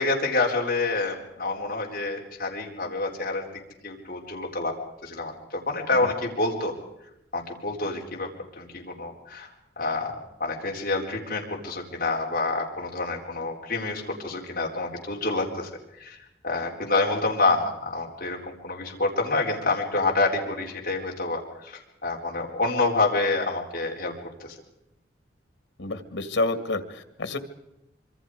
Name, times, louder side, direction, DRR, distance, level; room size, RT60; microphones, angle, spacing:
voice 1, 0.0-3.5 3.8-4.7 5.0-6.7 7.3-8.3 8.6-15.7 16.0-16.2 16.4-24.6, left 3 dB, 50° left, -2 dB, 4.1 m, -27 dB
voice 2, 25.8-27.4, left 2 dB, 90° left, 10 dB, 2.1 m, -28 dB
26.0 x 24.5 x 5.0 m, 0.87 s
head